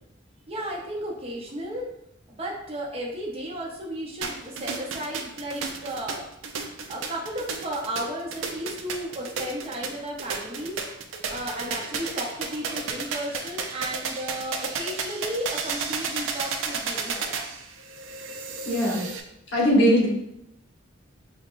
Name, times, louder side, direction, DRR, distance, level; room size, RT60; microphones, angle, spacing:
voice 1, 0.5-1.9 2.3-6.2 6.9-10.8 11.3-17.4, equal, 30° right, -2 dB, 0.7 m, -34 dB
sound 1, 4.2-19.2, right 5 dB, 80° right, 0.4 m, -33 dB
voice 2, 18.6-19.1 19.5-20.1, equal, 60° left, -4 dB, 1.3 m, -20 dB
5.5 x 2.2 x 2.5 m, 0.80 s
head